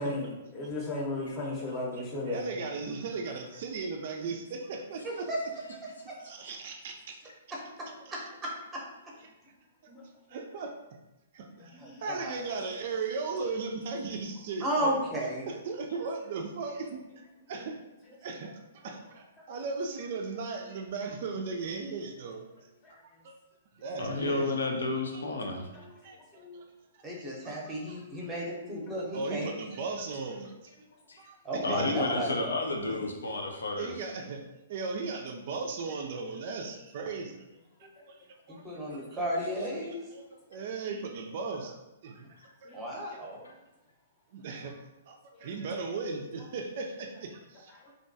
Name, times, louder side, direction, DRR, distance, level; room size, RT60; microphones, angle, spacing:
voice 1, 0.0-2.5 9.9-10.0 11.7-12.0 19.4-19.5 22.8-22.9 25.7-26.6 37.8-38.1 38.9-39.1 42.6-42.8 43.1-43.5 47.8-47.9, left 2 dB, 25° left, -3 dB, 0.7 m, -37 dB
voice 2, 2.3-5.3 6.2-7.2 7.9-8.1 9.2-9.3 9.8-9.9 10.3-10.7 11.3-17.0 17.5-17.8 18.2-22.4 22.9-23.3 23.7-24.6 25.1-25.2 26.0-26.6 26.9-27.0 27.4-27.5 28.0-28.3 29.1-30.7 31.2-32.1 33.0-33.1 33.8-34.4 34.7-37.4 37.8-39.0 40.1-40.2 40.5-41.7 42.0-42.2 42.6-42.7 43.1-43.2 44.3-44.7 45.1-47.9, right 4 dB, 55° right, 3 dB, 0.3 m, -37 dB
voice 3, 5.0-5.4 7.8-8.8 11.8-12.3 14.6-15.5 27.0-29.5 31.4-32.3 38.6-40.0 42.7-43.4, equal, 10° right, -3 dB, 0.7 m, -33 dB
voice 4, 24.0-25.7 31.1-31.2 31.6-33.9 43.4-43.5, left 2 dB, 80° left, 2 dB, 0.5 m, -31 dB
2.5 x 2.2 x 2.6 m, 0.98 s
figure-of-eight pair, 120°, 0 cm